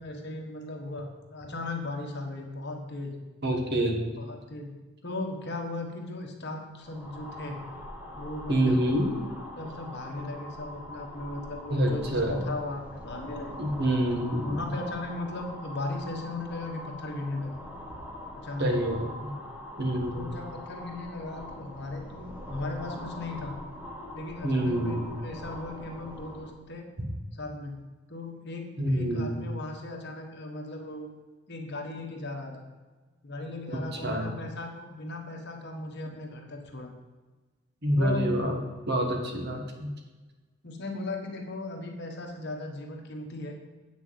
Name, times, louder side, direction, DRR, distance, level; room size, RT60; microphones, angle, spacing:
voice 1, 0.0-3.2 4.2-4.8 5.0-7.6 8.2-8.9 9.6-13.6 14.5-17.6 18.4-18.8 20.1-23.6 24.1-26.9 27.3-27.8 28.1-31.1 31.5-32.7 33.2-36.9 38.0-38.3 40.6-43.5, left 2 dB, 50° left, 2 dB, 1.5 m, -37 dB
voice 2, 3.4-4.0 8.5-9.1 11.7-12.5 13.6-14.7 18.6-19.3 19.8-20.3 24.4-25.1 28.8-29.4 33.9-34.3 37.8-38.6 38.9-39.9, right 1 dB, 50° right, 3 dB, 1.6 m, -27 dB
sound 1, 6.7-26.6, left 1 dB, 10° right, 1.2 m, -43 dB
8.6 x 6.2 x 7.9 m, 1.2 s
head